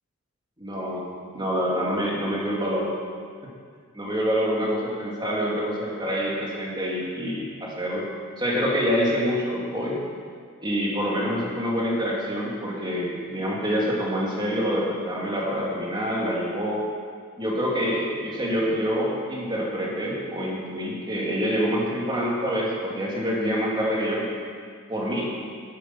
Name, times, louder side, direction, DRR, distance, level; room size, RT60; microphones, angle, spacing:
voice 1, 0.6-1.1 1.3-2.9 3.9-8.0 8.4-10.0 10.6-16.8 17.4-24.3 24.9-25.3, equal, 20° right, -4 dB, 2.5 m, -26 dB
12.5 x 10.5 x 6.0 m, 2.1 s
head